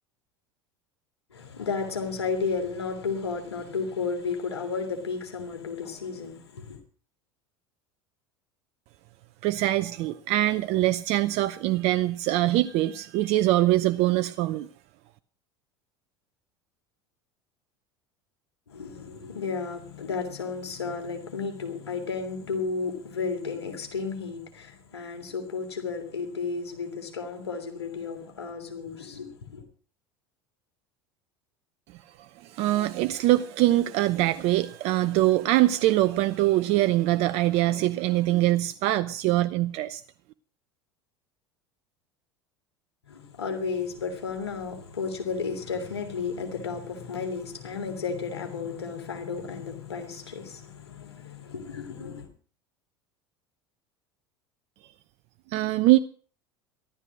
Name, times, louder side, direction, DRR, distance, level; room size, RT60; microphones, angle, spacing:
voice 1, 1.3-6.8 18.7-29.6 43.1-52.3, left 5 dB, 85° left, 3.2 m, -33 dB
voice 2, 9.4-14.7 32.4-40.0 55.5-56.0, right 16 dB, 55° right, 0.8 m, -23 dB
14.5 x 12.5 x 6.2 m
hypercardioid pair, 75°, 13 cm